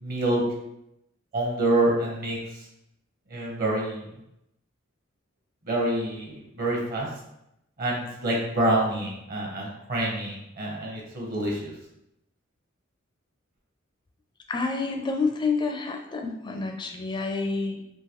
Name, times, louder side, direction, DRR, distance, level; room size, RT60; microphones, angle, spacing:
voice 1, 0.0-0.4 1.3-2.4 3.3-4.0 5.6-7.1 7.8-11.7, right 1 dB, 50° right, -2 dB, 0.9 m, -27 dB
voice 2, 14.5-17.8, left 4 dB, 25° left, 4 dB, 0.4 m, -28 dB
3.7 x 2.6 x 3.0 m, 0.84 s
head